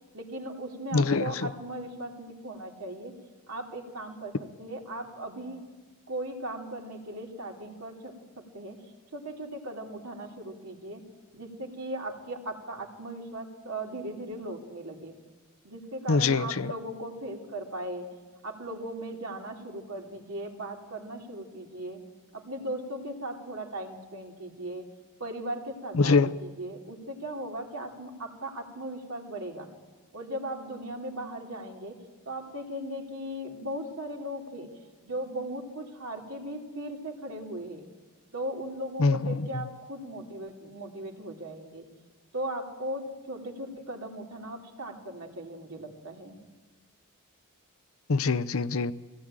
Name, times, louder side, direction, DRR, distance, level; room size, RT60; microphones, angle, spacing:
voice 1, 0.1-3.1 3.5-4.3 4.6-5.6 6.1-8.8 9.1-11.0 11.3-15.1 15.6-18.1 18.4-22.0 22.3-24.9 25.2-29.7 30.1-32.0 32.2-34.7 35.0-37.9 38.3-41.9 42.3-46.4, right 1 dB, 75° right, 1 dB, 3.2 m, -38 dB
voice 2, 0.9-1.2 16.1-16.4 26.0-26.3 39.0-39.2 48.1-48.9, left 4 dB, 65° left, 14 dB, 0.7 m, -23 dB
23.0 x 17.0 x 8.9 m, 1.3 s
head